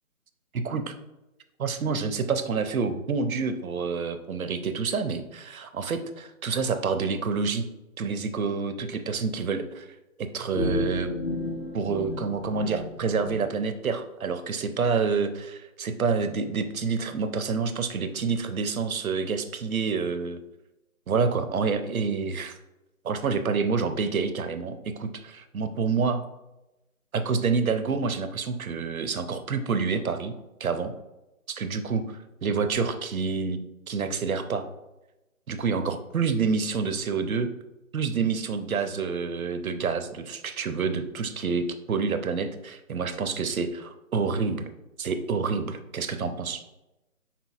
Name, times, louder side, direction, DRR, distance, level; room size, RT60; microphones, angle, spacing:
voice 1, 0.5-0.9 1.6-7.6 8.0-9.9 10.2-11.1 11.7-20.4 21.1-22.6 23.0-26.2 27.1-30.3 30.6-30.9 31.6-34.6 35.5-37.5 37.9-44.7 45.0-46.6, right 5 dB, 75° right, 9 dB, 0.7 m, -28 dB
sound 1, 10.5-13.4, left 2 dB, 45° left, 0.4 m, -32 dB
6.0 x 3.7 x 2.4 m, 0.98 s
figure-of-eight pair, 160°, 43 cm